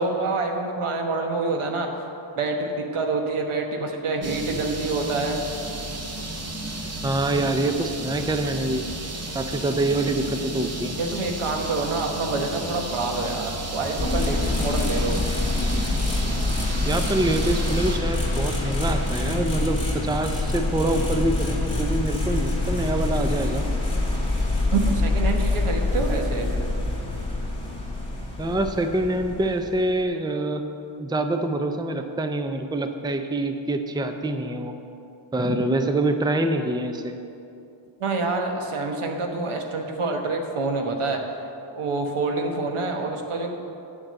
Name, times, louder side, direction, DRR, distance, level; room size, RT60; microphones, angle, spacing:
voice 1, 0.0-1.9 2.4-5.4 11.0-15.2 24.7-26.5 38.0-41.2 41.7-43.6, right 3 dB, 80° right, 3 dB, 1.4 m, -27 dB
sound 1, 4.2-18.0, right 1 dB, 30° right, 1.1 m, -33 dB
voice 2, 7.0-8.8 9.3-10.9 16.9-23.7 28.4-30.6 31.0-34.7 35.3-37.2, right 2 dB, 10° right, 6 dB, 0.6 m, -25 dB
sound 2, 14.0-30.0, left 2 dB, 10° left, 2.1 m, -25 dB
9.4 x 6.2 x 7.6 m, 2.7 s
wide cardioid pair, 95°, 50 cm